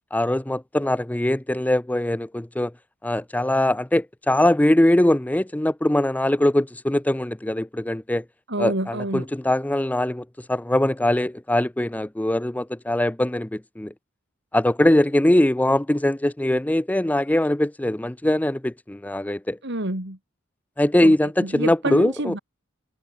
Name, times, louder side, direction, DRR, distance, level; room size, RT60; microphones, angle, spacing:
voice 1, 0.1-2.7 3.0-8.2 8.6-13.9 14.5-19.6 20.8-22.3, left 1 dB, 10° left, 0.5 m, -22 dB
voice 2, 8.5-9.2 19.6-20.2 21.0-21.1 21.4-22.4, right 1 dB, 60° right, 4.2 m, -28 dB
head